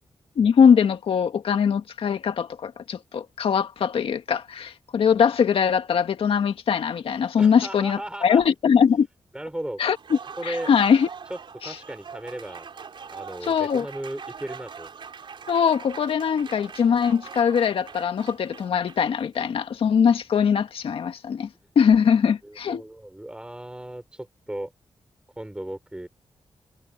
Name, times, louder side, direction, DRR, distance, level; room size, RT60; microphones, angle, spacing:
voice 1, 0.4-9.1 9.8-11.1 11.6-11.7 13.4-13.9 15.5-21.5 21.8-22.8, left 7 dB, 80° left, 1.9 m, -21 dB
voice 2, 7.4-8.5 9.3-9.8 10.4-10.7 11.3-11.4 11.6-12.7 13.1-14.9 22.4-24.7 25.4-26.1, right 1 dB, 10° right, 4.7 m, -36 dB
Applause, 9.8-19.2, right 6 dB, 60° right, 5.2 m, -42 dB
wide cardioid pair, 105°, 9 cm